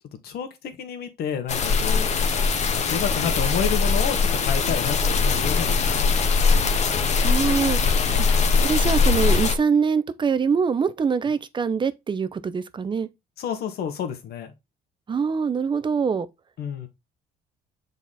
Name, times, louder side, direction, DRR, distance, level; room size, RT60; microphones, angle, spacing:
voice 1, 0.2-2.1 2.4-6.4 13.4-14.5 16.6-16.9, left 8 dB, 65° left, 1.7 m, -30 dB
sound 1, 1.5-9.6, left 5 dB, 40° left, 1.3 m, -21 dB
voice 2, 7.2-7.8 8.2-13.1 15.1-16.3, right 6 dB, 30° right, 0.7 m, -24 dB
7.1 x 4.1 x 4.2 m
cardioid pair, 110°, 17 cm